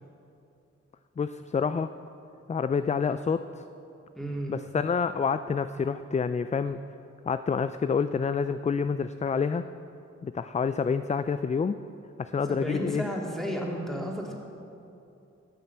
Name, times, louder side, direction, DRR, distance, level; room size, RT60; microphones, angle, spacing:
voice 1, 1.2-1.9 2.5-3.4 4.5-6.8 7.3-9.6 10.2-11.8 12.2-13.0, left 5 dB, 25° left, 12 dB, 0.4 m, -28 dB
voice 2, 4.1-4.5 12.5-14.4, equal, ahead, -2 dB, 2.8 m, -32 dB
12.5 x 7.3 x 7.1 m, 2.7 s
cardioid pair, 40°, 29 cm